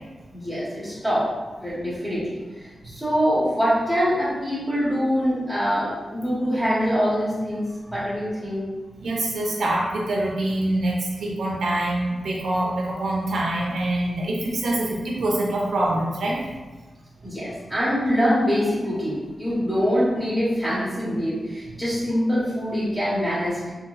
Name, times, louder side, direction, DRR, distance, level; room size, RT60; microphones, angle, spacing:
voice 1, 0.3-1.3 1.6-7.6 7.9-8.6 17.2-23.7, equal, ahead, -11 dB, 1.3 m, -24 dB
voice 2, 9.0-16.4 21.7-21.8, right 1 dB, 85° right, -3 dB, 0.9 m, -25 dB
4.4 x 3.1 x 2.3 m, 1.2 s
wide cardioid pair, 115°, 0 cm